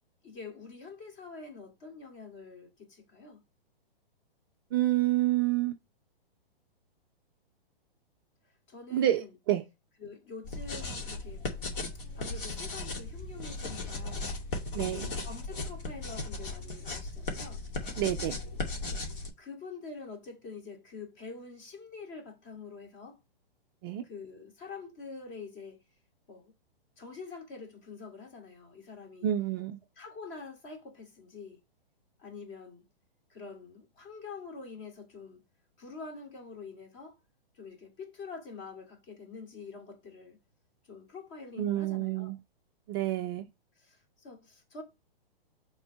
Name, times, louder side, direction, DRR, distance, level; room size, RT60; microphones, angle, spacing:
voice 1, 0.2-3.4 8.7-9.3 10.0-11.4 12.2-14.3 14.9-17.6 18.9-23.2 24.0-25.8 26.3-26.5 27.0-29.3 30.0-31.6 32.2-32.9 33.3-35.4 35.8-37.2 37.5-40.4 40.9-42.4 43.8-44.8, left 4 dB, 35° left, 2.6 m, -46 dB
voice 2, 4.7-5.7 8.9-9.6 14.7-15.1 18.0-18.4 23.8-24.0 29.2-29.8 41.6-42.4 42.9-43.5, right 13 dB, 25° right, 0.4 m, -28 dB
sound 1, 10.4-19.3, left 2 dB, 60° left, 2.4 m, -37 dB
6.2 x 3.7 x 6.0 m
hypercardioid pair, 140°, 30 cm